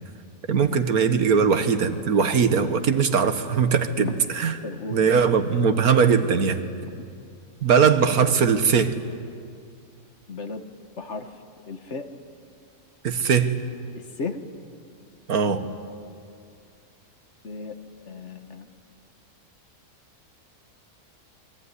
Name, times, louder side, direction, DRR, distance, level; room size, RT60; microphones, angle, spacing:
voice 1, 0.5-4.6 4.9-6.6 7.6-8.9 13.0-13.6 15.3-15.7, right 6 dB, 75° right, 9 dB, 1.8 m, -20 dB
voice 2, 4.6-5.0 6.8-6.9 10.3-10.6 11.0-11.3 11.7-12.1 14.2-14.4 17.4-17.8 18.1-18.7, left 4 dB, 50° left, 7 dB, 1.7 m, -34 dB
27.0 x 22.5 x 9.8 m, 2.3 s
omnidirectional pair, 1.6 m